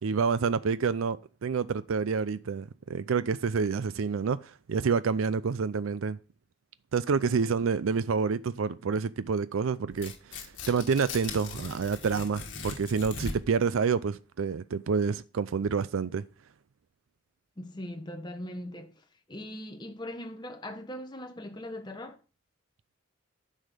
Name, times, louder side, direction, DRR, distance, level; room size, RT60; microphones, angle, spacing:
voice 1, 0.0-6.2 6.9-16.2, right 5 dB, 80° right, 0.4 m, -28 dB
Tearing, 9.9-13.6, left 4 dB, 60° left, 2.0 m, -40 dB
voice 2, 17.6-18.9 19.3-22.2, left 1 dB, 20° left, 1.2 m, -40 dB
9.8 x 6.4 x 5.1 m
head